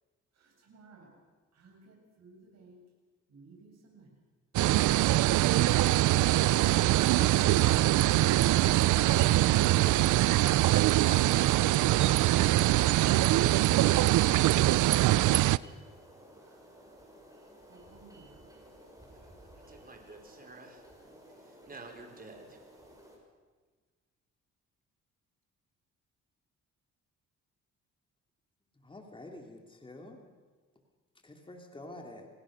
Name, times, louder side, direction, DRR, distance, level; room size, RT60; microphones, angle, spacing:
voice 1, 0.3-1.2 1.5-2.8 3.3-4.1 6.3-8.3 14.3-14.8 16.4-16.7 17.7-18.5 22.1-22.2, right 3 dB, 60° right, 1 dB, 7.3 m, -54 dB
sound 1, 4.5-15.6, right 16 dB, 75° right, 0.6 m, -23 dB
voice 2, 8.8-10.1 19.6-20.8 21.4-22.6, right 3 dB, 30° right, 4 dB, 4.5 m, -48 dB
sound 2, 13.9-23.2, equal, 10° right, 6.5 m, -55 dB
voice 3, 28.8-30.2 31.2-32.3, left 1 dB, 15° left, 3 dB, 2.9 m, -48 dB
27.5 x 18.0 x 6.5 m, 1.4 s
cardioid pair, 90°, 30 cm